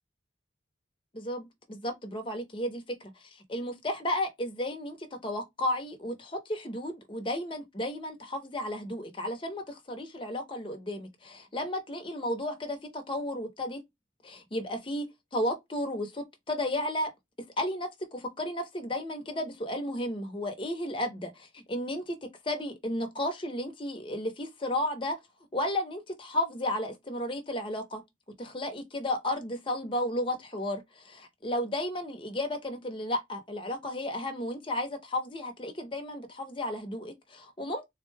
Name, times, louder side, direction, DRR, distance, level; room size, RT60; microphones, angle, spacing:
voice 1, 1.1-13.8 14.2-15.0 15.3-17.1 17.6-22.2 22.4-25.2 25.5-28.0 28.4-37.8, left 1 dB, 25° left, 0.8 m, -33 dB
3.8 x 2.2 x 3.2 m
head